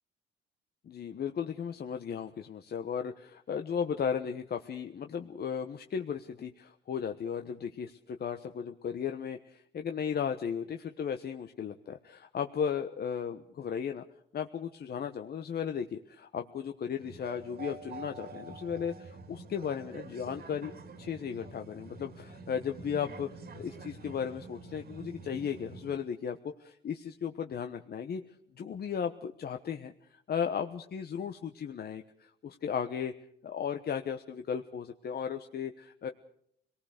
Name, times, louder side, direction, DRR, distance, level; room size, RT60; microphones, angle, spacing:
voice 1, 0.8-14.0 14.3-20.7 21.0-23.3 23.5-28.2 28.6-33.1 33.4-36.1, left 7 dB, 55° left, 6 dB, 1.2 m, -35 dB
sound 1, 17.0-26.0, right 3 dB, 50° right, 2.5 m, -47 dB
25.5 x 19.0 x 6.6 m, 0.70 s
cardioid pair, 90°, 20 cm